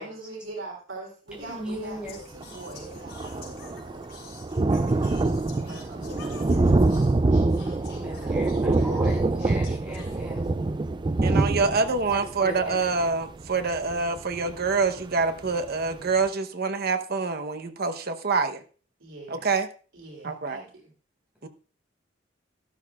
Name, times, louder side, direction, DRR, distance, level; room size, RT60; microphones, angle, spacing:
voice 1, 0.0-2.0 2.3-4.0 4.7-8.1 19.0-19.5 19.9-20.9, right 2 dB, 85° right, 3.2 m, -44 dB
voice 2, 1.3-2.2 8.0-10.4 12.1-13.0 21.4-21.5, equal, 5° right, 4.7 m, -38 dB
Singing, 2.0-10.8, left 4 dB, 55° left, 4.7 m, -48 dB
Thunder, 2.1-2.2 2.4-15.0 15.5-15.6 15.9-16.0, right 2 dB, 25° right, 0.4 m, -25 dB
voice 3, 11.2-18.6 19.3-19.7 20.2-20.6 21.4-21.5, right 4 dB, 55° right, 0.9 m, -26 dB
13.0 x 12.0 x 2.4 m
head